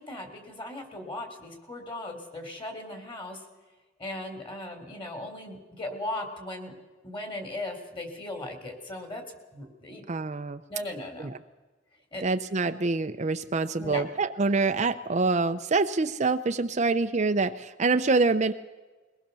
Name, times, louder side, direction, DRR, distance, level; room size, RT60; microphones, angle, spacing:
voice 1, 0.0-3.4 4.0-6.7 7.0-9.2 9.5-10.0 10.7-11.3 12.1-12.3 13.8-14.0, left 1 dB, 25° left, 6 dB, 3.6 m, -37 dB
voice 2, 10.1-10.6 11.2-11.3 12.2-18.5, right 3 dB, 40° right, 8 dB, 0.6 m, -26 dB
22.0 x 19.0 x 6.9 m, 1.2 s
head